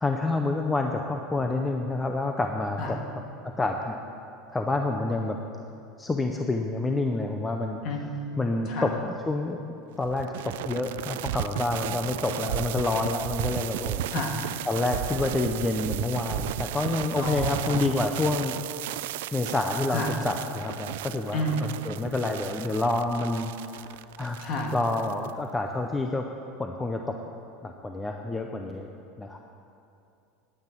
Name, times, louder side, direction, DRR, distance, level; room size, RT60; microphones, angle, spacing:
voice 1, 0.0-4.0 4.5-5.4 6.0-7.8 8.4-9.6 10.0-14.1 14.7-18.6 19.3-23.9 24.2-26.3 26.6-27.2 27.6-28.9 29.2-29.4, left 2 dB, 10° left, 3 dB, 0.5 m, -28 dB
sound 1, 10.0-25.3, right 13 dB, 80° right, 0.3 m, -34 dB
voice 2, 14.1-14.4 17.2-17.9 19.9-20.2 21.3-21.7 24.4-24.7, left 1 dB, 35° left, 2 dB, 1.7 m, -30 dB
9.9 x 9.3 x 9.1 m, 2.6 s
supercardioid pair, 175°, 0 cm